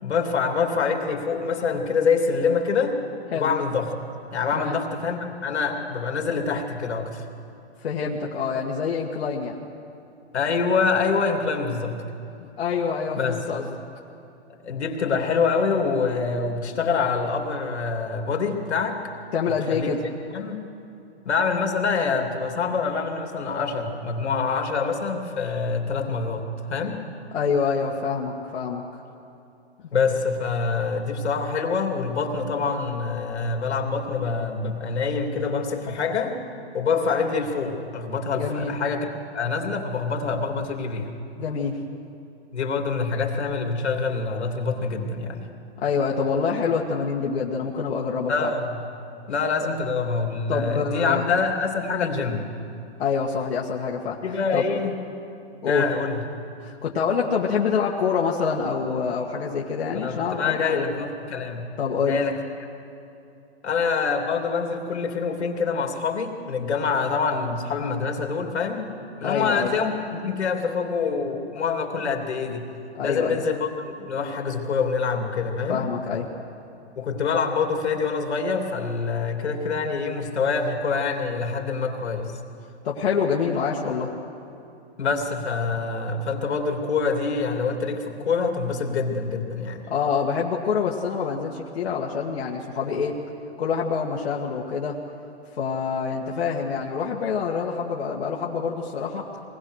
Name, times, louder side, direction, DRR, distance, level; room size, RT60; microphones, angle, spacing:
voice 1, 0.0-3.0 3.3-3.9 4.3-7.2 10.3-12.0 13.1-13.5 14.6-19.0 19.4-19.9 20.3-20.6 21.2-27.0 29.9-36.4 36.7-39.1 39.3-41.1 42.5-45.5 48.3-48.8 49.3-52.5 54.2-54.9 55.6-56.2 59.9-61.7 62.0-62.4 63.6-72.7 73.0-73.7 74.0-75.8 76.9-82.3 85.0-89.8, left 5 dB, 85° left, 3 dB, 3.0 m, -25 dB
voice 2, 7.8-9.6 12.4-13.7 19.3-20.0 27.3-28.8 38.4-38.7 41.4-41.8 45.8-48.5 50.5-51.2 53.0-54.2 54.5-54.6 55.6-55.9 56.6-60.9 61.8-62.2 69.2-69.7 72.9-73.4 75.7-76.3 82.8-84.1 89.9-93.1 93.6-95.0 95.5-99.2, left 6 dB, 70° left, -3 dB, 1.9 m, -26 dB
24.0 x 19.5 x 6.4 m, 2.7 s
hypercardioid pair, 160°, 33 cm